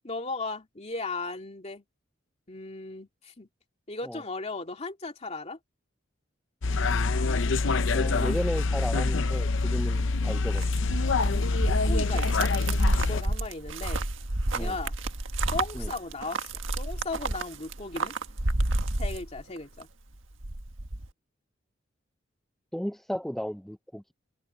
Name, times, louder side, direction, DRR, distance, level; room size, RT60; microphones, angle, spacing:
voice 1, 0.0-1.8 2.5-3.5 3.9-5.6 11.5-12.5 13.0-14.1 14.6-14.9 15.5-16.5 16.8-18.2 19.0-19.9, left 3 dB, 35° left, 2.7 m, -36 dB
sound 1, 6.6-13.2, left 3 dB, 65° left, 0.7 m, -26 dB
voice 2, 7.9-10.6 14.5-14.8 15.7-15.9 22.7-24.1, equal, ahead, 0.5 m, -34 dB
sound 2, 9.9-19.8 20.1-21.1, right 2 dB, 70° right, 1.6 m, -30 dB
head